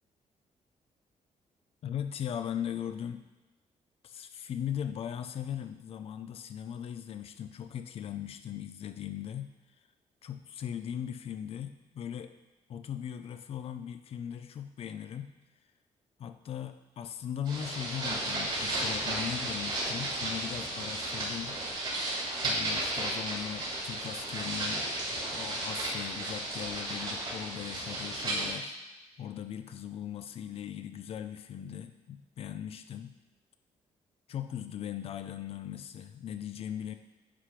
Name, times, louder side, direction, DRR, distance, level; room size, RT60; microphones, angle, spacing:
voice 1, 1.8-3.2 4.0-9.5 10.2-12.3 12.7-15.3 16.2-21.6 22.4-24.9 25.3-28.8 29.2-33.1 34.3-36.9, left 9 dB, 55° left, 9 dB, 0.5 m, -39 dB
sound 1, 17.5-28.5, right 1 dB, 40° right, 2.8 m, -34 dB
9.7 x 3.5 x 5.9 m, 1.1 s
cardioid pair, 155°, 12 cm